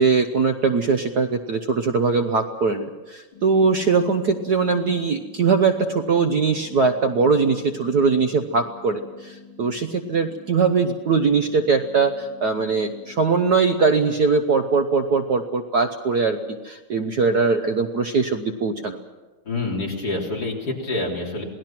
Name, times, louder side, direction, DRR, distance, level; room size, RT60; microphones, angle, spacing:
voice 1, 0.0-19.0, right 4 dB, 55° right, 6 dB, 1.3 m, -21 dB
sound 1, 3.3-13.3, left 5 dB, 70° left, 6.5 m, -47 dB
voice 2, 19.5-21.4, left 2 dB, 45° left, -2 dB, 4.2 m, -27 dB
27.5 x 19.0 x 6.0 m, 1.2 s
omnidirectional pair, 2.4 m